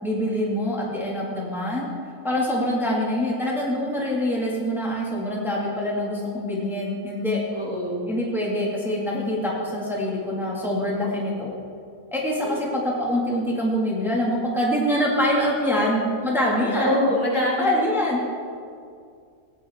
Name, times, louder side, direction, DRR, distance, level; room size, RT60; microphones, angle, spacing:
voice 1, 0.0-1.9 2.2-7.4 8.1-11.5 12.1-17.0 17.6-18.3, equal, ahead, -4 dB, 1.9 m, -25 dB
voice 2, 7.5-8.1 12.4-12.5 16.7-17.8, left 1 dB, 75° left, -7 dB, 4.0 m, -24 dB
16.0 x 9.9 x 3.6 m, 2.3 s
omnidirectional pair, 1.6 m